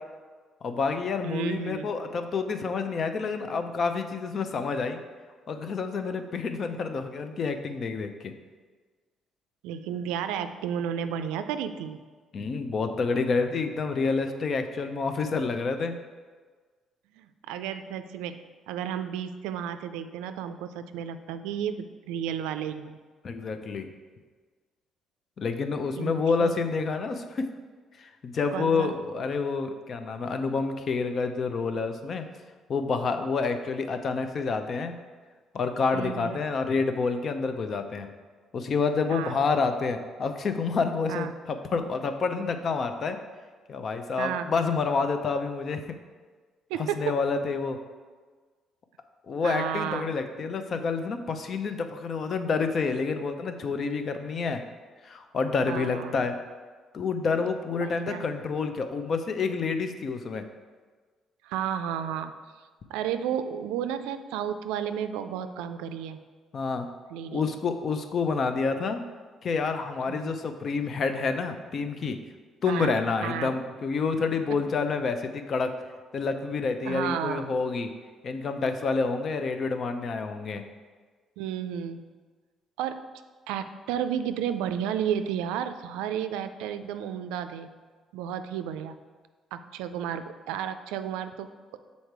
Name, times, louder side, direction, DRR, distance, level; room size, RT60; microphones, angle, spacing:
voice 1, 0.6-5.0 5.5-8.3 12.3-15.9 23.2-23.9 25.4-27.5 28.0-32.3 32.7-35.0 35.5-38.1 38.5-43.2 43.7-45.9 46.8-47.8 49.3-54.6 55.0-56.4 56.9-60.5 66.5-66.9 67.3-69.0 69.4-72.2 72.6-75.7 76.1-77.9 78.2-80.6, left 4 dB, 55° left, 8 dB, 0.6 m, -28 dB
voice 2, 1.2-1.9 9.6-12.0 17.2-23.0 26.0-26.5 28.5-28.9 35.9-36.4 39.1-39.4 41.1-41.3 44.2-44.5 46.7-47.1 49.4-50.1 55.7-56.2 57.8-58.2 61.4-62.3 62.9-66.2 67.1-67.6 70.1-70.4 72.7-72.9 73.2-73.5 74.5-74.6 76.9-77.5 81.4-82.1 82.8-83.1 83.5-87.7 88.1-89.0 89.5-91.8, right 9 dB, 90° right, 9 dB, 0.3 m, -32 dB
6.5 x 4.1 x 4.6 m, 1.5 s
supercardioid pair, 70°, 0 cm